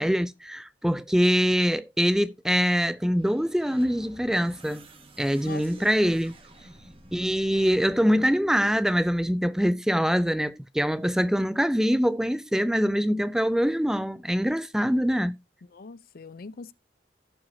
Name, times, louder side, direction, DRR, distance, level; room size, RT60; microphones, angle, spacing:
voice 1, 0.0-4.9 5.2-6.3 7.1-15.4, equal, 5° right, 0.4 m, -24 dB
sound 1, 3.1-9.3, right 2 dB, 30° right, 1.5 m, -52 dB
voice 2, 5.4-5.9 15.7-16.7, left 4 dB, 55° left, 0.5 m, -42 dB
16.5 x 5.9 x 2.7 m
head